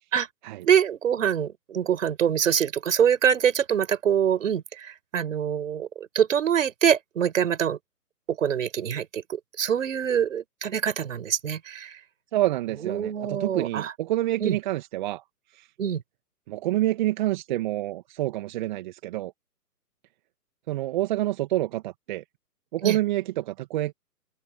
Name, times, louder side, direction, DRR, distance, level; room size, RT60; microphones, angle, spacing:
voice 1, 0.7-5.9 6.1-7.8 8.3-12.0 12.8-13.9 14.4-14.6 15.8-16.0 22.8-23.0, right 8 dB, 50° right, 6.0 m, -24 dB
voice 2, 12.3-15.2 15.5-15.7 16.5-19.3 20.7-22.2 22.7-23.9, right 15 dB, 30° right, 1.9 m, -27 dB
figure-of-eight pair, 140°, 48 cm